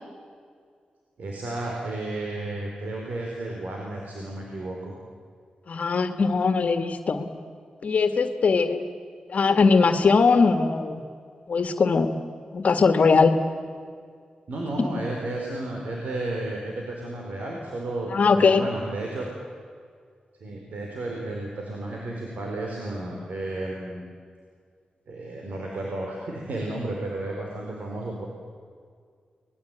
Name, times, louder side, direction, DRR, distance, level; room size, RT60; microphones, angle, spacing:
voice 1, 1.2-4.9 14.5-19.3 20.4-24.0 25.1-28.3, right 2 dB, 80° right, -1 dB, 4.5 m, -32 dB
voice 2, 5.7-7.3 7.8-8.9 9.3-11.0 11.5-12.2 12.5-13.4 14.8-14.9 18.1-18.6, left 4 dB, 65° left, 8 dB, 1.8 m, -20 dB
25.5 x 20.5 x 9.1 m, 2.1 s
cardioid pair, 70°, 3 cm